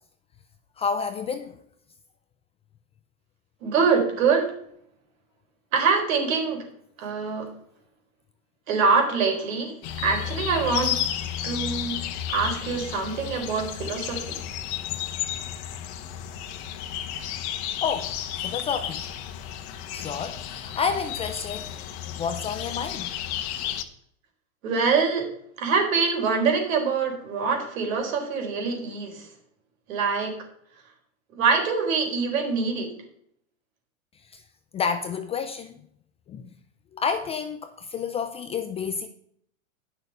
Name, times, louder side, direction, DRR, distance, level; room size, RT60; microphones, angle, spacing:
voice 1, 0.8-1.6 17.8-19.1 19.9-21.8 22.1-23.1 34.3-34.4 34.7-35.8 36.3-36.5 36.9-39.1, left 6 dB, 15° left, 0.4 m, -30 dB
voice 2, 3.6-4.6 5.7-6.7 7.0-7.5 8.7-11.0 11.4-12.0 12.3-14.4 24.6-29.3 29.9-30.4 31.3-32.9, right 5 dB, 70° right, 4.2 m, -24 dB
sound 1, 9.8-23.8, left 11 dB, 50° left, 1.4 m, -32 dB
10.5 x 6.7 x 6.5 m
hypercardioid pair, 125°, 42 cm